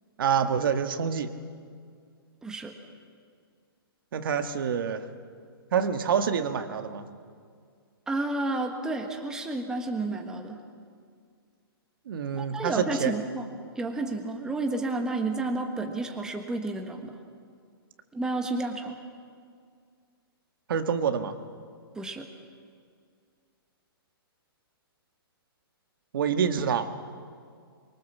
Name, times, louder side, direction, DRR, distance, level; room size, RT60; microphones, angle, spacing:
voice 1, 0.2-1.3 4.1-5.0 5.7-7.0 12.1-13.1 20.7-21.3 26.1-26.9, right 7 dB, 60° right, 8 dB, 1.6 m, -27 dB
voice 2, 2.4-2.7 8.1-10.6 12.4-13.5 13.7-17.2 18.1-19.0 21.9-22.3, right 2 dB, 5° right, 3 dB, 1.4 m, -31 dB
24.5 x 23.5 x 7.3 m, 2.1 s
hypercardioid pair, 160°, 13 cm